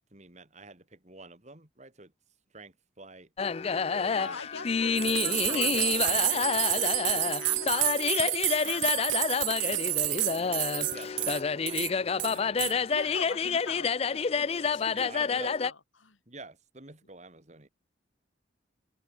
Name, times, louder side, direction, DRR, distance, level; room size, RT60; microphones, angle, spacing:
voice 1, 0.1-2.1 2.5-3.3 3.6-4.4 5.4-6.2 10.3-13.2 14.9-15.5 16.3-17.7, right 3 dB, 35° right, 3.0 m, -48 dB
sound 1, 3.4-15.7, left 5 dB, 30° left, 0.4 m, -29 dB
voice 2, 4.1-6.5 6.8-9.5 12.9-16.2, left 4 dB, 85° left, 2.9 m, -44 dB
sound 2, 5.0-11.4 11.7-11.9 12.2-12.7, right 19 dB, 70° right, 0.6 m, -29 dB
head